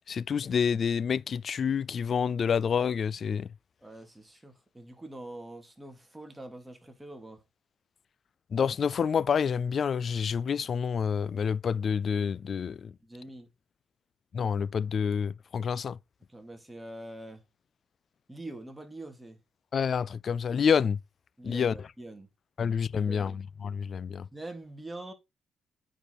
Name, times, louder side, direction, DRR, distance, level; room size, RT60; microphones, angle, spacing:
voice 1, 0.0-3.5 8.5-12.9 14.3-16.0 19.7-21.0 21.4-21.9 22.6-24.3, left 6 dB, 50° left, 0.3 m, -28 dB
voice 2, 3.8-7.4 13.0-13.5 16.3-17.4 18.3-19.4 21.4-22.3 22.9-23.4 24.3-25.1, right 1 dB, 10° right, 2.6 m, -44 dB
8.9 x 5.1 x 4.1 m
cardioid pair, 90°, 0 cm